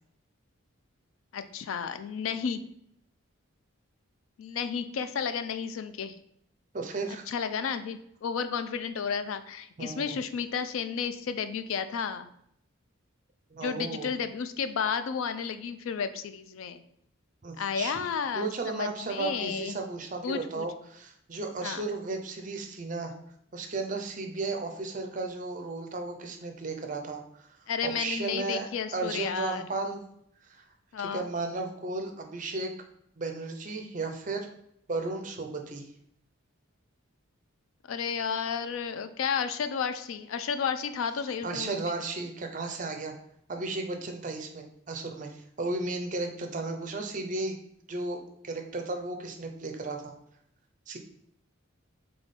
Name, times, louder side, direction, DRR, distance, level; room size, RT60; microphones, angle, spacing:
voice 1, 1.3-2.6 4.4-6.1 7.3-12.3 13.6-16.8 17.6-19.8 20.2-20.7 21.6-21.9 27.7-29.6 30.9-31.3 37.9-41.9, left 6 dB, 75° left, 11 dB, 0.4 m, -32 dB
voice 2, 6.7-7.3 9.8-10.2 13.5-14.1 17.4-18.0 18.3-23.1 23.5-27.5 27.8-28.7 28.9-30.0 30.5-30.6 31.0-32.7 33.2-34.5 34.9-35.8 41.4-43.1 43.5-47.6 47.9-48.2 48.4-50.1 50.9-51.0, right 3 dB, 35° right, 4 dB, 0.5 m, -34 dB
3.6 x 3.3 x 4.0 m, 0.72 s
head